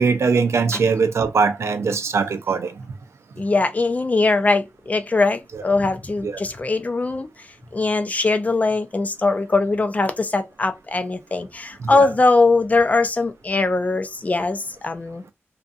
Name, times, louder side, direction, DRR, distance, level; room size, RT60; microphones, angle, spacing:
voice 1, 0.0-2.7 5.5-5.6 6.2-6.4 11.8-12.1, right 5 dB, 80° right, 0.5 m, -21 dB
voice 2, 3.4-7.3 7.7-15.2, left 3 dB, 35° left, 0.5 m, -21 dB
2.6 x 2.5 x 2.5 m
wide cardioid pair, 95°, 5 cm